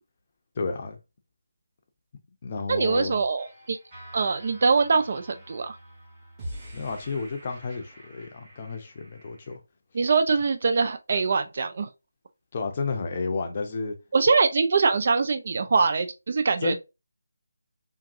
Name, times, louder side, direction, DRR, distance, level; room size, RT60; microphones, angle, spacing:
voice 1, 0.6-1.0 2.4-3.2 6.7-9.6 12.5-13.9 16.6-16.7, left 4 dB, 30° left, 0.6 m, -31 dB
voice 2, 2.7-3.8 4.1-5.8 9.9-11.9 14.1-16.7, right 4 dB, 40° right, 0.3 m, -23 dB
sound 1, 3.4-9.6, equal, 15° right, 1.3 m, -45 dB
3.7 x 2.6 x 2.6 m
figure-of-eight pair, 155°, 0 cm